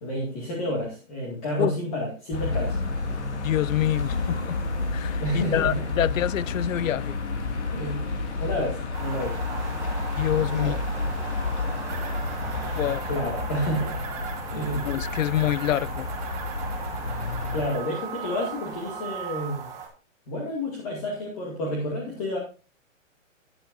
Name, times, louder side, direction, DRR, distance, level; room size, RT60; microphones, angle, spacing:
voice 1, 0.0-3.1 5.2-5.7 7.7-8.1 8.4-9.8 10.5-10.8 13.1-13.9 14.5-14.9 17.5-19.7 20.3-22.4, equal, 30° left, 2.1 m, -30 dB
sound 1, 2.3-17.7, left 3 dB, 55° left, 2.2 m, -30 dB
voice 2, 3.4-4.6 4.9-7.2 10.2-10.7 12.7-13.1 14.8-16.1, left 12 dB, 80° left, 0.5 m, -26 dB
sound 2, 8.9-19.9, right 6 dB, 10° right, 1.4 m, -38 dB
sound 3, 11.9-17.8, right 7 dB, 30° right, 2.6 m, -42 dB
11.5 x 10.0 x 2.6 m
hypercardioid pair, 170°, 39 cm